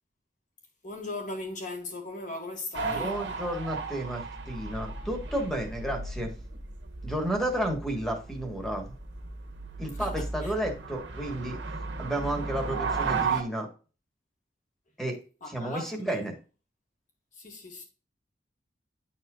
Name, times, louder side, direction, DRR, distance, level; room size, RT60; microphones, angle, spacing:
voice 1, 0.8-3.2 9.9-10.5 15.4-16.2 17.3-17.8, left 2 dB, 45° left, 1.9 m, -38 dB
sound 1, 2.7-13.4, right 4 dB, 85° right, 1.3 m, -35 dB
voice 2, 2.8-6.3 7.0-8.9 9.8-11.6 12.0-13.7 15.0-15.2 15.5-16.3, right 1 dB, ahead, 1.5 m, -32 dB
10.5 x 4.3 x 2.4 m
head